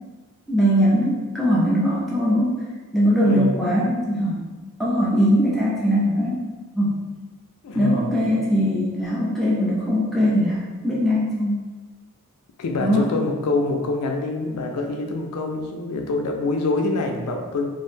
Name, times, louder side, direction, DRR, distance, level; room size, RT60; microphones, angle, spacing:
voice 1, 0.5-2.6 2.9-4.4 4.8-6.4 6.7-7.0 7.7-11.6 12.8-13.0, equal, ahead, -7 dB, 0.4 m, -21 dB
voice 2, 3.2-3.6 7.6-8.2 12.6-17.7, left 3 dB, 80° left, 3 dB, 0.4 m, -25 dB
2.4 x 2.1 x 3.1 m, 1.3 s
head